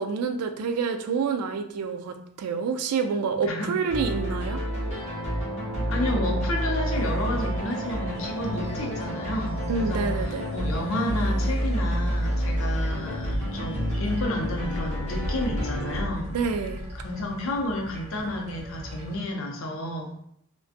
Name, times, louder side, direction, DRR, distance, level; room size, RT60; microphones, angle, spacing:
voice 1, 0.0-4.6 9.7-10.5 16.3-16.8, right 5 dB, 85° right, 6 dB, 0.3 m, -28 dB
sound 1, 3.9-16.0, equal, 30° left, 0.9 m, -29 dB
voice 2, 5.9-16.3 17.0-20.1, left 1 dB, 65° left, 1 dB, 0.5 m, -31 dB
sound 2, 6.9-19.2, equal, 30° right, 0.5 m, -40 dB
2.5 x 2.1 x 2.5 m, 0.69 s
head